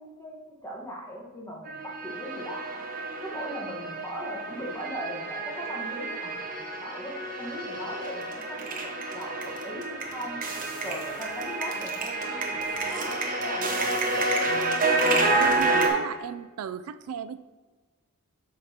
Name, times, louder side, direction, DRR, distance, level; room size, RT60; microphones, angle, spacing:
voice 1, 0.0-2.9 3.2-12.5 12.8-14.3, equal, 10° left, -3 dB, 1.3 m, -39 dB
sound 1, 1.7-15.9, right 2 dB, 35° right, 1.0 m, -29 dB
voice 2, 15.4-17.4, right 7 dB, 80° right, 13 dB, 0.3 m, -35 dB
8.5 x 6.3 x 2.9 m, 1.3 s
head